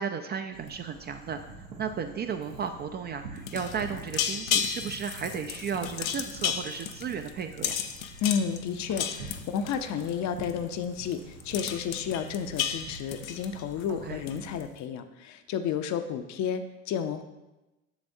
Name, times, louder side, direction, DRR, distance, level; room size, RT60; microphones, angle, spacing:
voice 1, 0.0-7.8 13.9-14.2, right 6 dB, 25° right, 7 dB, 0.3 m, -34 dB
sound 1, 0.5-14.6, right 3 dB, 85° right, 1.1 m, -46 dB
sound 2, 3.4-10.1 10.4-10.7 11.0-11.1 11.4-13.9 14.3-14.6, left 9 dB, 90° left, 0.5 m, -33 dB
voice 2, 8.2-17.2, left 7 dB, 45° left, 9 dB, 0.6 m, -31 dB
7.1 x 6.7 x 2.7 m, 1.0 s
hypercardioid pair, 70°, 40 cm